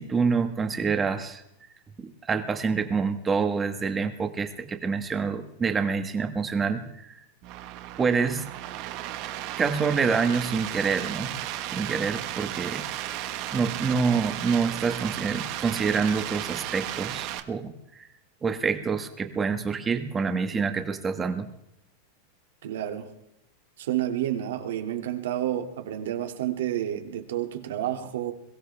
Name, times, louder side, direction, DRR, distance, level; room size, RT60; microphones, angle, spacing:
voice 1, 0.0-1.4 2.0-6.9 8.0-8.4 9.6-11.3 11.7-12.8 13.5-18.1 18.4-21.5, right 5 dB, 15° right, 8 dB, 1.4 m, -27 dB
sound 1, 7.4-17.4, right 13 dB, 45° right, 1.4 m, -34 dB
voice 2, 22.6-23.1 23.8-28.3, right 12 dB, 85° right, 5 dB, 2.3 m, -30 dB
22.5 x 17.0 x 3.4 m, 0.82 s
supercardioid pair, 160°, 0 cm